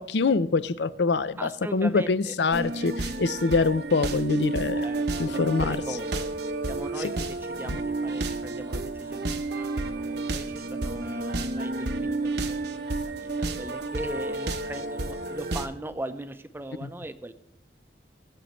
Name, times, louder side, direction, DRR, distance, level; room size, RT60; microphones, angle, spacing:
voice 1, 0.0-4.8 5.2-5.8, left 4 dB, 70° left, 0.5 m, -25 dB
voice 2, 1.4-2.4 4.8-6.3 6.6-17.3, right 1 dB, 15° right, 0.6 m, -39 dB
sound 1, 2.5-15.7, right 2 dB, 65° right, 0.9 m, -31 dB
21.5 x 7.6 x 3.1 m
head